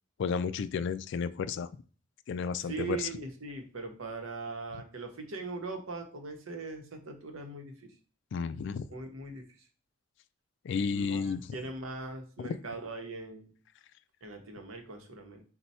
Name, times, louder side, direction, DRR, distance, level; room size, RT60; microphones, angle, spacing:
voice 1, 0.2-1.7 2.3-3.1 8.3-8.9 10.6-11.5 12.4-12.6, left 5 dB, 60° left, 13 dB, 0.3 m, -32 dB
voice 2, 2.6-7.9 8.9-9.4 10.9-13.5 14.2-15.4, right 3 dB, 80° right, 4 dB, 0.9 m, -40 dB
4.3 x 2.2 x 4.1 m, 0.40 s
head